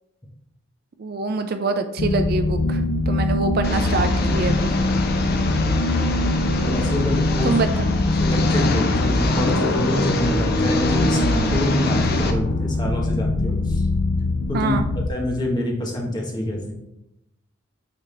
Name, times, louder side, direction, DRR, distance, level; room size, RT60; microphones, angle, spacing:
voice 1, 1.0-4.8 7.4-8.0 14.5-14.8, right 3 dB, 45° right, 8 dB, 0.4 m, -25 dB
sound 1, 2.0-15.1, left 2 dB, 90° left, 0.6 m, -22 dB
Engine, 3.6-12.3, left 2 dB, 50° left, 0.6 m, -26 dB
voice 2, 6.6-7.6 8.2-13.9 14.5-14.7 15.1-16.7, left 1 dB, 20° left, -1 dB, 1.1 m, -26 dB
8.6 x 3.4 x 3.3 m, 0.85 s
head